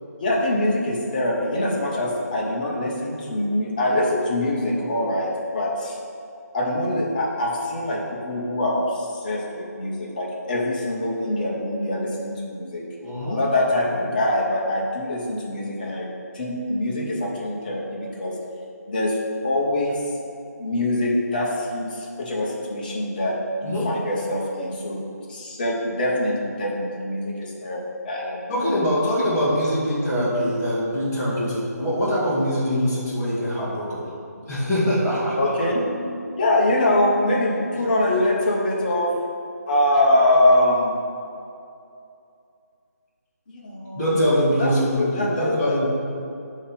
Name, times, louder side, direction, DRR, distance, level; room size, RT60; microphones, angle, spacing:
voice 1, 0.2-6.0 6.5-12.8 13.3-16.1 16.3-18.4 18.9-19.2 19.4-20.1 20.6-25.0 25.3-28.7 35.4-39.2 39.7-41.0 43.5-44.2 44.6-44.7 45.0-45.9, left 1 dB, 30° left, -3 dB, 1.1 m, -24 dB
voice 2, 13.0-13.4 14.0-14.1 23.6-23.9 28.5-34.1 34.5-35.5 43.9-45.9, equal, 10° left, -11 dB, 1.6 m, -23 dB
8.3 x 3.2 x 5.4 m, 2.6 s
figure-of-eight pair, 155°, 9 cm